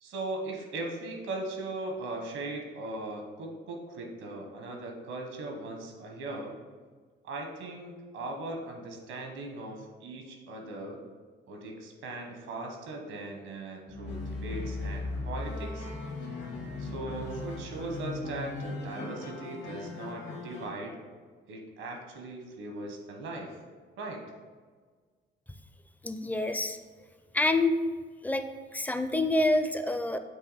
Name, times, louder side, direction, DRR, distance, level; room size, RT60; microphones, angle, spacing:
voice 1, 0.0-6.5 7.2-11.0 11.5-15.9 16.8-21.0 21.5-23.6 24.0-24.2, right 2 dB, 90° right, 2 dB, 1.2 m, -39 dB
sound 1, 13.9-20.6, left 2 dB, 65° left, 1.5 m, -38 dB
voice 2, 26.0-26.8 27.3-27.8 28.2-28.4 28.7-30.2, left 2 dB, 10° left, 8 dB, 0.4 m, -27 dB
7.7 x 3.0 x 4.1 m, 1.5 s
cardioid pair, 90°, 20 cm